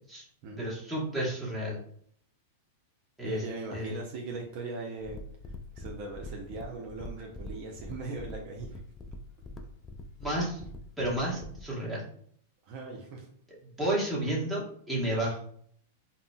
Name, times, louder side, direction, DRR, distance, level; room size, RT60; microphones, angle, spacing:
voice 1, 0.6-1.8 3.2-3.4 3.7-4.0 10.2-10.6 11.0-12.1 13.8-15.4, right 1 dB, 10° right, -5 dB, 1.1 m, -31 dB
voice 2, 3.2-8.8 12.6-13.3, right 3 dB, 50° right, 0 dB, 0.6 m, -39 dB
sound 1, 5.0-11.7, left 1 dB, 20° left, 0.3 m, -44 dB
3.7 x 2.0 x 2.2 m, 0.63 s
hypercardioid pair, 110°, 0 cm